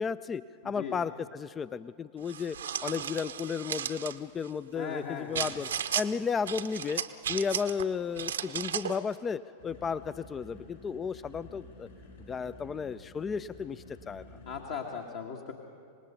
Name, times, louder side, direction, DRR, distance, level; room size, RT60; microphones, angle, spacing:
voice 1, 0.0-7.0 7.3-11.9 12.3-14.2, left 6 dB, 20° left, 16 dB, 0.4 m, -34 dB
sound 1, 2.3-4.2 5.3-6.1 6.5-7.8 8.2-9.0, right 8 dB, 65° right, 0.8 m, -34 dB
voice 2, 4.7-5.6 14.5-15.5, left 6 dB, 55° left, 1 dB, 1.6 m, -38 dB
sound 2, 9.6-14.7, left 2 dB, 80° left, 6.0 m, -51 dB
25.5 x 20.0 x 5.5 m, 2.6 s
figure-of-eight pair, 90°, 0 cm